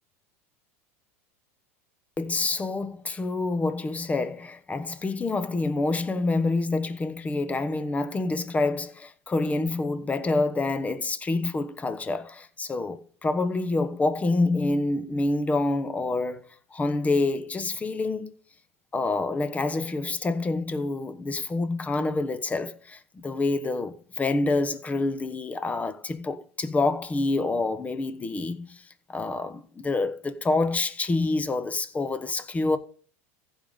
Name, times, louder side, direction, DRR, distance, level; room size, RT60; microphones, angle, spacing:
voice 1, 2.2-16.4 16.7-18.3 18.9-28.8 29.1-32.8, left 3 dB, 20° left, 1.2 m, -27 dB
15.5 x 5.5 x 3.8 m
hypercardioid pair, 100°, 8 cm